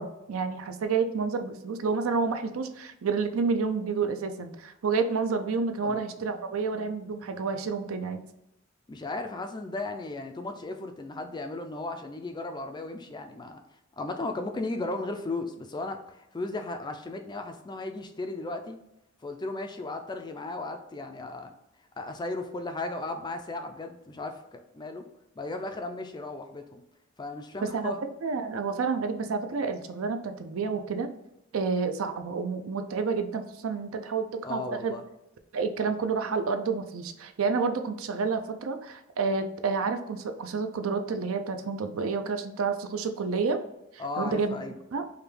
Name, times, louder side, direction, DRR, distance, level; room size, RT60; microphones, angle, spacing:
voice 1, 0.0-8.2 27.7-27.9 28.2-31.1 31.5-34.9 35.5-43.6 43.9-44.6 44.9-45.0, right 4 dB, 70° right, 8 dB, 0.4 m, -29 dB
voice 2, 5.8-6.4 8.9-18.8 19.2-21.5 22.0-25.0 25.4-26.8 27.2-28.0 34.4-35.0 44.0-44.7, left 2 dB, 20° left, 6 dB, 0.3 m, -36 dB
4.9 x 2.2 x 3.2 m, 0.89 s
head